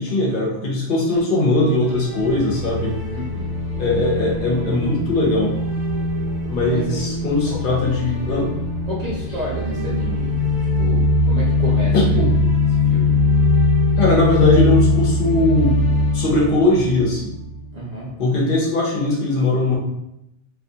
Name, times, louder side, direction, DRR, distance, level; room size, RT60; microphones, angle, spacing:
voice 1, 0.0-2.9 3.8-5.5 6.5-8.5 11.9-12.3 14.0-15.8 16.1-17.3 18.2-19.8, left 2 dB, 60° left, -3 dB, 0.7 m, -19 dB
sound 1, 1.7-17.7, left 2 dB, 80° right, 1.0 m, -21 dB
voice 2, 3.1-3.6 6.7-7.6 8.9-12.4 12.8-13.2 17.7-18.2, equal, 50° right, -5 dB, 0.5 m, -31 dB
2.3 x 2.2 x 2.6 m, 0.84 s
omnidirectional pair, 1.1 m